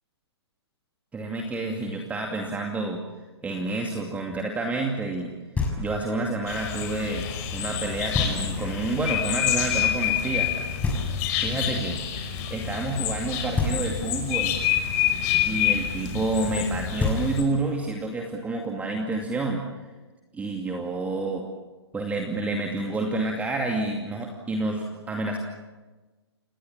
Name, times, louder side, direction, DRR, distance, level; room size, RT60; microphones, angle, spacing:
voice 1, 1.1-3.0 3.4-5.4 5.8-10.5 11.4-12.0 12.5-14.6 15.5-19.6 20.3-21.4 21.9-25.4, right 2 dB, 10° right, 2 dB, 2.5 m, -29 dB
Knock, 5.5-6.2 8.1-8.8 10.8-11.6 13.5-14.3 16.6-16.7 17.0-17.8, left 3 dB, 10° left, 6.2 m, -29 dB
sound 1, 6.5-17.4, left 10 dB, 35° left, 5.7 m, -27 dB
28.5 x 21.5 x 7.5 m, 1.2 s
hypercardioid pair, 130°, 14 cm